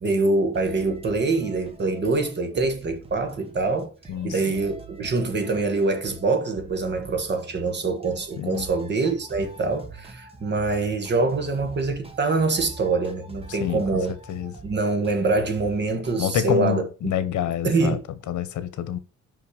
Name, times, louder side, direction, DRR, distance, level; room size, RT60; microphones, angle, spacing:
voice 1, 0.0-3.9 4.2-14.2 14.6-17.1 17.6-18.0, right 3 dB, 35° right, 1.4 m, -24 dB
sound 1, 0.5-16.3, right 3 dB, 20° right, 1.3 m, -45 dB
voice 2, 4.1-4.6 8.4-8.6 13.5-13.8 14.3-14.5 16.2-18.0 18.3-19.0, left 10 dB, 80° left, 1.0 m, -27 dB
5.7 x 5.5 x 4.9 m
cardioid pair, 155°, 29 cm